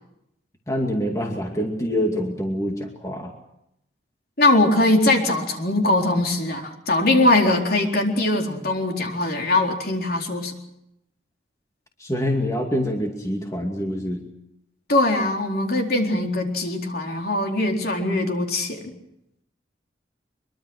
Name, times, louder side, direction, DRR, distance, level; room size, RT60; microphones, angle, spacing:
voice 1, 0.7-3.3 12.0-14.3, equal, 15° left, 2 dB, 2.4 m, -26 dB
voice 2, 4.4-10.5 14.9-18.9, left 2 dB, 55° left, 2 dB, 4.1 m, -21 dB
23.5 x 23.5 x 6.3 m, 0.80 s
head